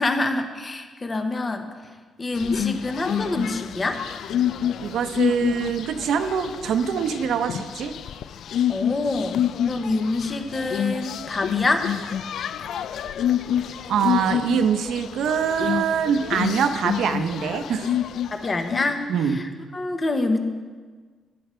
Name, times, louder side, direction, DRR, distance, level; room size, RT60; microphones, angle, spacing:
voice 1, 0.0-1.7 2.2-4.0 8.7-9.4 9.7-11.9 18.3-20.4, left 2 dB, 25° left, 7 dB, 1.0 m, -26 dB
sound 1, 2.3-19.1, left 9 dB, 75° left, 0.4 m, -28 dB
voice 2, 4.8-7.9 13.9-17.9 19.1-19.4, right 7 dB, 80° right, 8 dB, 0.9 m, -24 dB
14.5 x 10.5 x 4.5 m, 1.5 s
cardioid pair, 140°, 0 cm